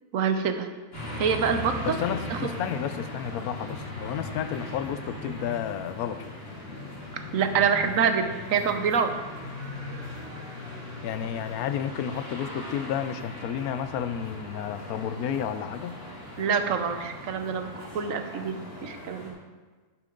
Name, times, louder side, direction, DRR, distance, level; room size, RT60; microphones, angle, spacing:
voice 1, 0.1-0.7 1.2-2.0 2.3-2.5 7.3-9.1 16.4-19.3, right 6 dB, 60° right, 7 dB, 1.1 m, -26 dB
sound 1, 0.9-19.3, left 1 dB, 35° left, 3.1 m, -39 dB
voice 2, 1.8-6.3 11.0-16.0, left 9 dB, 70° left, 11 dB, 1.0 m, -31 dB
10.5 x 8.7 x 3.8 m, 1.4 s
omnidirectional pair, 1.7 m